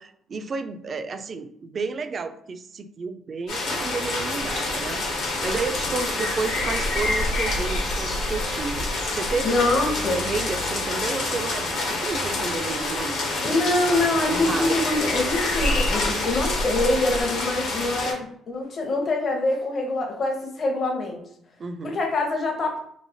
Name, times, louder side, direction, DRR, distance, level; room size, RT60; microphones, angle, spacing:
voice 1, 0.0-5.0 5.4-9.6 10.1-13.2 13.4-13.6 14.3-14.8 21.6-22.0, right 4 dB, 45° right, 9 dB, 0.3 m, -31 dB
sound 1, 3.5-18.1, left 2 dB, 80° left, 1.0 m, -27 dB
sound 2, 4.4-10.5 11.0-17.2, equal, 80° right, 0.6 m, -34 dB
voice 2, 9.4-10.2 13.4-21.2 21.8-22.8, left 2 dB, 50° left, 1 dB, 0.7 m, -24 dB
3.1 x 2.0 x 2.7 m, 0.68 s
supercardioid pair, 65°, 0 cm